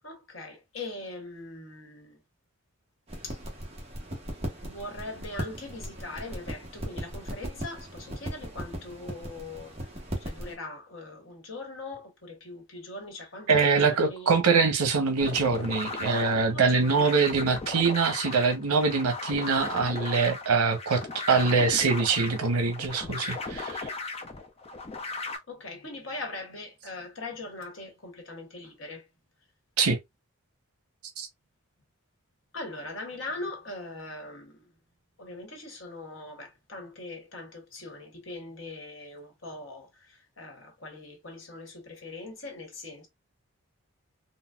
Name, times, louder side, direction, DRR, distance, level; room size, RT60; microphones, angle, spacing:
voice 1, 0.0-2.2 3.2-3.4 4.6-9.7 10.2-14.3 16.5-17.1 25.5-29.1 32.5-34.7 35.2-43.1, left 2 dB, 60° left, 1.2 m, -41 dB
sound 1, 3.1-10.5, equal, 25° right, 0.9 m, -38 dB
voice 2, 13.5-23.8 29.8-30.0 31.2-31.3, right 4 dB, 90° right, 0.8 m, -24 dB
sound 2, 15.2-25.4, left 3 dB, 25° left, 0.5 m, -37 dB
3.9 x 2.1 x 2.3 m
head